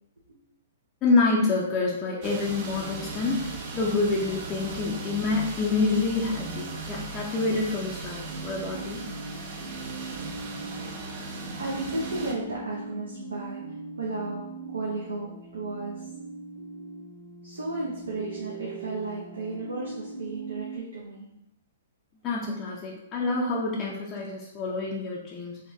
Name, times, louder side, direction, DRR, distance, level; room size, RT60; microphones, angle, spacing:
voice 1, 1.0-9.0 22.2-25.6, left 3 dB, 25° left, -4 dB, 0.5 m, -27 dB
sound 1, 2.2-12.3, right 4 dB, 40° right, 0.6 m, -38 dB
sound 2, 8.2-20.8, right 3 dB, 5° right, 0.9 m, -40 dB
voice 2, 11.4-16.1 17.4-21.3, right 2 dB, 75° right, -5 dB, 0.7 m, -34 dB
3.9 x 2.5 x 2.6 m, 0.81 s
figure-of-eight pair, 115°, 0 cm